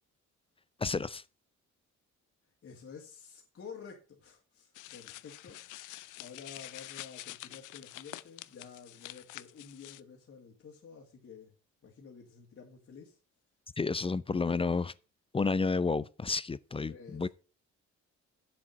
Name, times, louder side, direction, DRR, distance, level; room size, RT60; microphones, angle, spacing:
voice 1, 0.8-1.2 13.8-14.9 15.3-17.3, left 4 dB, 20° left, 0.4 m, -31 dB
voice 2, 2.6-5.6 6.2-11.5 11.8-13.2 14.3-14.5 16.9-17.3, left 6 dB, 50° left, 2.4 m, -50 dB
sound 1, 4.7-10.0, left 16 dB, 85° left, 0.6 m, -47 dB
7.5 x 7.5 x 5.3 m
cardioid pair, 90°, 30 cm